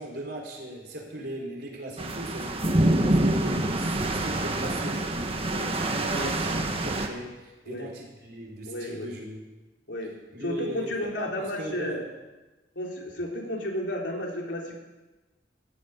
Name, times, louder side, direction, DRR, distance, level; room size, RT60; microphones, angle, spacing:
voice 1, 0.0-5.2 5.5-9.5 10.3-12.0, right 1 dB, 60° right, -1 dB, 4.3 m, -38 dB
sound 1, 2.0-7.1, right 1 dB, 30° right, 1.5 m, -26 dB
voice 2, 8.7-9.1 9.9-10.1 10.4-12.0 12.8-14.8, left 1 dB, 85° left, -1 dB, 3.8 m, -32 dB
15.0 x 9.4 x 9.9 m, 1.1 s
head